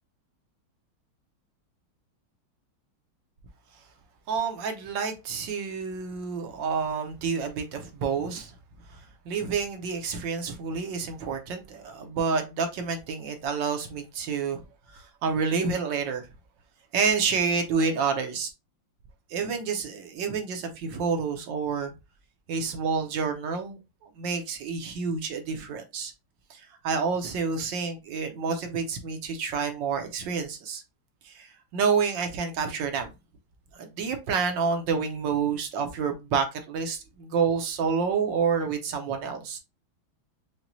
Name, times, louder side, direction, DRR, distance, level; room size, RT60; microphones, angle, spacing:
voice 1, 4.3-8.5 8.9-9.0 9.3-14.6 14.9-16.3 16.9-18.5 19.3-21.9 22.5-26.1 26.5-30.8 31.2-33.1 33.7-39.6, right 5 dB, 70° right, 1.3 m, -29 dB
5.9 x 2.2 x 2.6 m
omnidirectional pair, 2.2 m